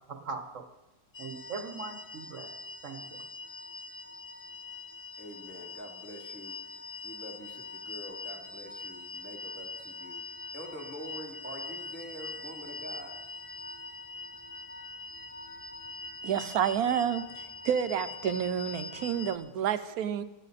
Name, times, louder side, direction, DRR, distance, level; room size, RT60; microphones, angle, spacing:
voice 1, 0.1-0.7 1.2-2.5 2.8-3.2, right 4 dB, 60° right, 7 dB, 1.4 m, -40 dB
sound 1, 1.1-19.4, left 3 dB, 55° left, 0.4 m, -43 dB
voice 2, 5.2-6.6 7.0-10.2 10.5-13.2, equal, 5° right, 0 dB, 2.7 m, -45 dB
voice 3, 16.2-17.2 17.6-20.2, right 8 dB, 80° right, 11 dB, 1.2 m, -29 dB
19.5 x 12.0 x 4.1 m, 0.98 s
omnidirectional pair, 1.6 m